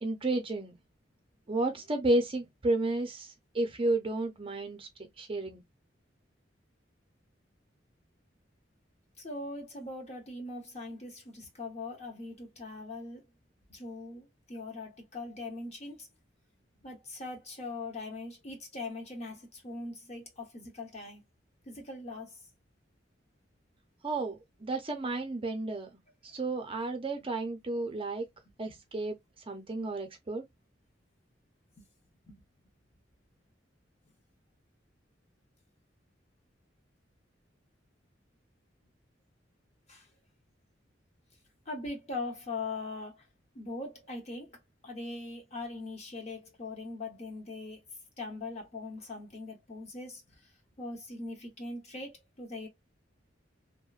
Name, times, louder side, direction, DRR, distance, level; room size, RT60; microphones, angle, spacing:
voice 1, 0.0-0.8 1.5-4.9 5.2-5.6 24.0-26.0 26.3-28.2 28.6-29.2 29.5-30.4, right 2 dB, 30° right, 0.6 m, -32 dB
voice 2, 9.2-13.2 13.7-16.1 16.8-21.2 21.7-22.3 32.3-32.4 39.9-40.0 41.7-43.2 43.5-44.5 44.8-47.8 48.2-50.2 50.8-52.7, left 2 dB, 35° left, 0.9 m, -41 dB
2.8 x 2.1 x 2.3 m
head